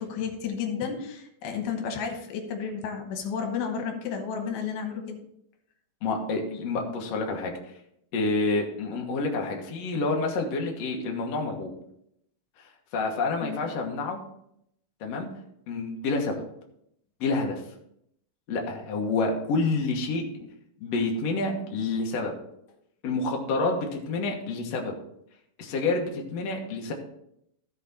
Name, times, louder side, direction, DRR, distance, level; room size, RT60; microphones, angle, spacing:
voice 1, 0.0-5.2 13.4-13.7, left 6 dB, 80° left, 4 dB, 3.1 m, -32 dB
voice 2, 6.0-7.5 8.1-11.7 12.9-14.2 15.0-15.3 15.7-16.4 17.2-17.6 18.5-20.2 20.8-22.3 23.0-24.9 25.6-26.9, left 3 dB, 60° left, 0 dB, 2.0 m, -28 dB
15.0 x 5.0 x 4.1 m, 0.76 s
omnidirectional pair, 4.4 m